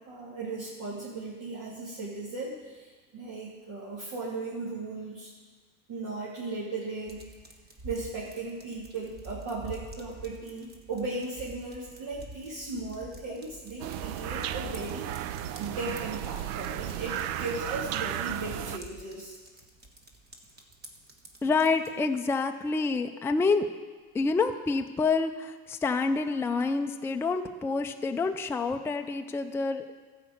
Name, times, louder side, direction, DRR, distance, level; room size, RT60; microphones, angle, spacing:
voice 1, 0.0-5.3 5.9-7.2 7.8-15.1 15.6-19.3, right 3 dB, 50° right, -7 dB, 2.9 m, -37 dB
sound 1, 7.1-22.0, right 1 dB, 25° right, 1.4 m, -49 dB
sound 2, 13.8-18.8, right 11 dB, 70° right, 0.7 m, -34 dB
voice 2, 21.4-23.7 24.1-29.9, left 4 dB, 5° left, 5 dB, 0.4 m, -28 dB
12.5 x 5.1 x 7.9 m, 1.4 s
supercardioid pair, 105°, 42 cm